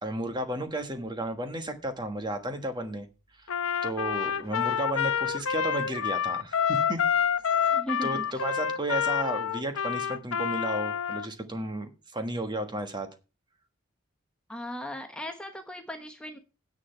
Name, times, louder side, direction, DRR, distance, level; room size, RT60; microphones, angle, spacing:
voice 1, 0.0-3.1 3.4-3.5 3.8-7.0 7.6-7.7 8.0-13.1, right 1 dB, 20° right, 7 dB, 1.4 m, -33 dB
Trumpet, 3.5-11.3, left 7 dB, 75° left, 0.7 m, -28 dB
voice 2, 7.7-8.2 14.5-16.4, equal, 5° left, 4 dB, 1.1 m, -37 dB
10.0 x 7.7 x 5.7 m, 0.31 s
head